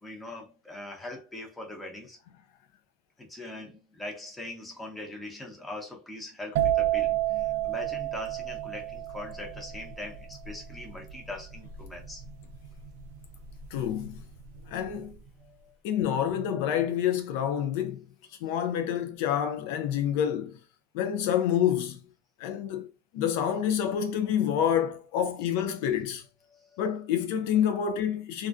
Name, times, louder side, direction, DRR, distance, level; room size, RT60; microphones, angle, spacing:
voice 1, 0.0-2.2 3.2-12.2 15.4-15.7 26.5-26.8, left 2 dB, 10° left, 0.8 m, -41 dB
sound 1, 6.6-14.1 14.4-14.9, right 13 dB, 65° right, 0.4 m, -30 dB
voice 2, 13.7-14.2 14.7-15.2 15.8-18.1 18.4-20.6 20.9-22.0 22.4-22.9 23.1-26.2 26.8-28.5, left 9 dB, 65° left, 0.3 m, -28 dB
2.3 x 2.3 x 2.4 m
hypercardioid pair, 105°, 0 cm